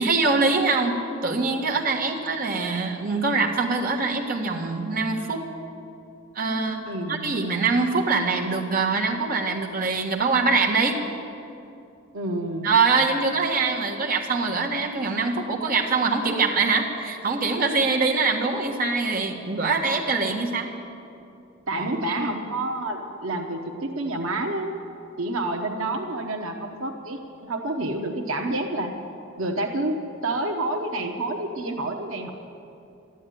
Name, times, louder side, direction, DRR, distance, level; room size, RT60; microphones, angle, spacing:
voice 1, 0.0-5.4 6.3-6.8 7.1-11.0 12.6-20.7 21.8-21.9, right 4 dB, 45° right, -1 dB, 1.6 m, -23 dB
voice 2, 6.8-7.4 12.1-12.7 21.7-24.7 25.2-28.9 29.4-32.3, right 2 dB, 85° right, 3 dB, 1.0 m, -29 dB
13.0 x 11.0 x 9.3 m, 2.7 s
head